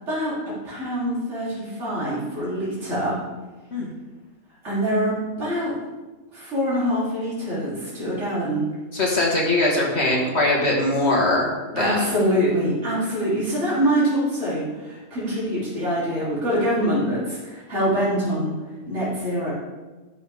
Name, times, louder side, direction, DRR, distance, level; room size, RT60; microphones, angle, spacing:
voice 1, 0.1-3.2 4.6-5.8 6.3-8.7 11.7-18.6 18.9-19.5, equal, 60° right, -9 dB, 3.4 m, -24 dB
voice 2, 8.9-11.5 11.7-12.0, left 2 dB, 50° left, -2 dB, 1.8 m, -21 dB
12.0 x 6.2 x 3.5 m, 1.2 s
omnidirectional pair, 1.4 m